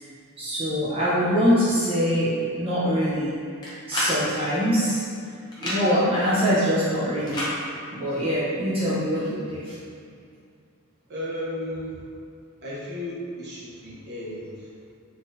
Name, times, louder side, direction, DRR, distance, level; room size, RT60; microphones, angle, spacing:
voice 1, 0.4-3.3 3.9-5.1 5.6-7.5 7.9-9.7, equal, 25° right, -10 dB, 0.6 m, -23 dB
sound 1, 3.6-4.2 5.5-5.8 7.3-7.5, left 1 dB, 20° left, 0.7 m, -28 dB
voice 2, 11.1-12.0 12.6-14.7, left 1 dB, 50° right, -7 dB, 0.9 m, -34 dB
3.8 x 2.6 x 2.6 m, 2.3 s
head